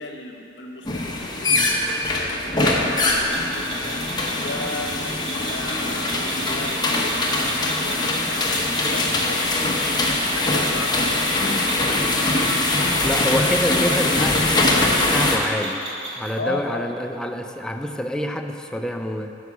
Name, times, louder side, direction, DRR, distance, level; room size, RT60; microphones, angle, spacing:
voice 1, 0.0-12.1 12.6-14.3 15.6-15.8 16.3-16.9, left 2 dB, 75° left, 3 dB, 0.9 m, -35 dB
sound 1, 0.8-15.4, left 2 dB, 25° left, 0.8 m, -22 dB
sound 2, 3.3-16.4, right 2 dB, 70° right, 1.3 m, -36 dB
voice 2, 13.0-14.7 15.1-15.9 16.2-19.3, equal, 5° left, 4 dB, 0.4 m, -27 dB
10.0 x 4.7 x 6.0 m, 2.9 s
head